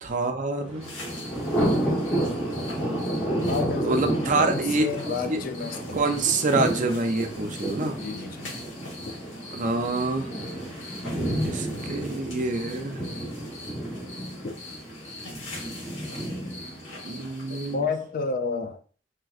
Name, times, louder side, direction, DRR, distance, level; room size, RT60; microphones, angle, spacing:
voice 1, 0.0-0.9 3.8-4.9 5.3-5.4 5.9-8.0 9.5-10.3 11.4-13.1 17.0-17.9, right 3 dB, 40° right, 0.5 m, -26 dB
Thunder, 0.7-17.7, right 1 dB, 5° left, 1.0 m, -31 dB
sound 1, 0.8-17.7, left 2 dB, 85° left, 1.2 m, -43 dB
voice 2, 3.5-4.1 4.3-6.1 8.0-8.5 9.1-9.2 14.4-14.6 17.7-18.8, left 4 dB, 45° left, 0.4 m, -31 dB
3.4 x 2.9 x 2.4 m
head